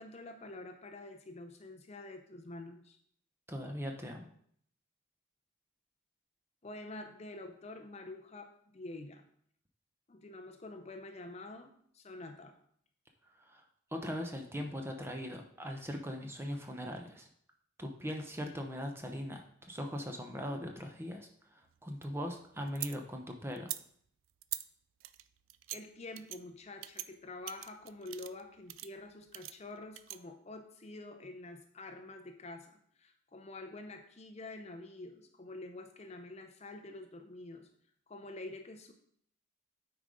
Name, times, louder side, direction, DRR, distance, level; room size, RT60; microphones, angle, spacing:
voice 1, 0.0-3.0 6.6-9.2 10.1-12.6 25.7-37.7 38.1-38.9, left 2 dB, 30° left, 6 dB, 0.5 m, -47 dB
voice 2, 3.5-4.3 13.4-13.6 13.9-17.3 17.8-23.7, equal, 10° right, 3 dB, 0.8 m, -40 dB
sound 1, 21.6-23.0 23.5-23.8 24.4-24.6 25.0-25.8 26.2-26.4 26.8-27.1 27.5-28.4 28.7-28.9 29.3-30.2, right 14 dB, 80° right, 0.4 m, -42 dB
8.9 x 4.9 x 3.8 m, 0.64 s
head